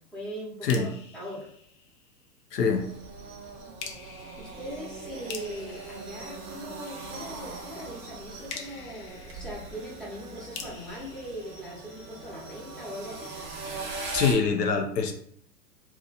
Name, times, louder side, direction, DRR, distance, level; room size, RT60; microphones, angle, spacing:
voice 1, 0.1-1.5 4.4-13.3, equal, ahead, -5 dB, 0.9 m, -40 dB
voice 2, 0.6-0.9 2.5-2.9 14.1-15.1, left 5 dB, 80° left, 3 dB, 0.8 m, -24 dB
sound 1, 0.7-2.4 3.8-7.1 8.5-12.4, left 6 dB, 45° left, 0.7 m, -46 dB
sound 2, 2.6-14.4, right 3 dB, 20° right, 0.3 m, -41 dB
2.8 x 2.4 x 4.0 m, 0.66 s
hypercardioid pair, 110°, 48 cm